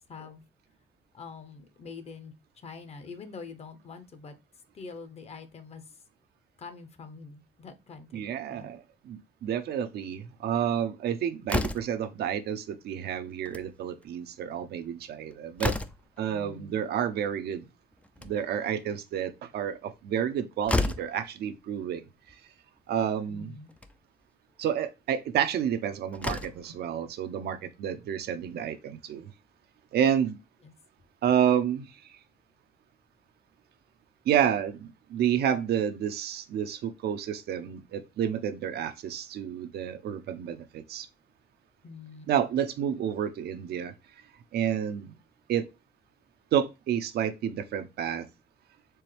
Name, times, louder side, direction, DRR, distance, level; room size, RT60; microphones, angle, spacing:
voice 1, 0.1-0.4 1.1-2.3 2.6-4.4 4.7-5.8 6.6-8.7 16.3-16.8 23.3-23.7 41.8-42.3, left 5 dB, 40° left, 0.8 m, -45 dB
voice 2, 8.1-15.7 16.2-17.7 18.2-22.0 22.3-22.4 22.9-23.6 24.6-29.3 29.9-30.4 31.2-32.2 34.3-41.1 42.3-43.9 44.5-45.1 45.5-45.7 46.5-48.3, right 9 dB, 70° right, 0.7 m, -30 dB
Slam, 11.5-12.1 13.3-13.7 14.0-14.1 14.4-14.5 15.0-16.2 17.9-18.6 20.2-20.3 20.7-21.2 22.3-22.4 22.8-22.9 23.7-23.9 25.6-25.7 26.1-26.7, left 2 dB, 5° left, 0.4 m, -31 dB
4.6 x 3.4 x 3.2 m
cardioid pair, 145°, 17 cm